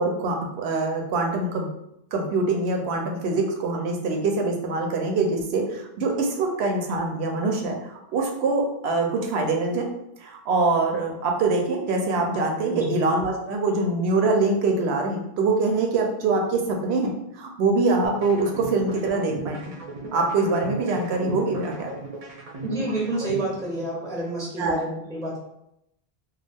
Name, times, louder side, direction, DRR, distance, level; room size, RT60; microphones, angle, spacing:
voice 1, 0.0-1.7 2.1-9.9 10.2-19.7 20.1-22.0 24.6-24.8, right 3 dB, 80° right, 2 dB, 0.8 m, -24 dB
sound 1, 18.0-24.1, right 3 dB, 50° right, 0.4 m, -36 dB
voice 2, 22.6-25.4, right 1 dB, 5° left, -4 dB, 0.5 m, -29 dB
2.3 x 2.3 x 3.3 m, 0.81 s
omnidirectional pair, 1.1 m